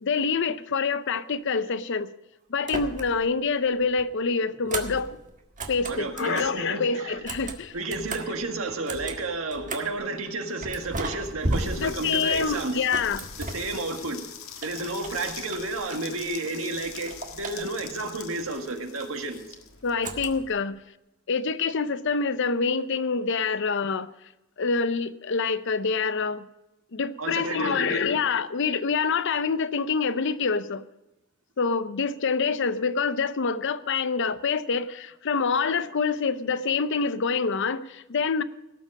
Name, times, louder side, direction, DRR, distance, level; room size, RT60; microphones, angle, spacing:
voice 1, 0.0-2.1 2.5-5.2 5.7-7.7 11.8-13.3 19.8-20.8 21.3-24.1 24.6-26.5 26.9-30.8 31.6-38.4, left 5 dB, 60° left, 14 dB, 0.6 m, -26 dB
sound 1, 2.6-3.4 3.7-6.6 7.1-10.0 10.6-14.2 14.6-16.3 16.6-18.0 20.0-20.6, right 2 dB, 40° right, 1.6 m, -36 dB
voice 2, 5.9-7.2 7.7-12.8 13.4-14.2 14.6-19.4 27.2-28.0, right 2 dB, 80° right, 4 dB, 1.8 m, -31 dB
sound 2, 11.4-20.4, left 8 dB, 75° left, 1.5 m, -44 dB
17.5 x 7.5 x 6.2 m, 0.94 s
head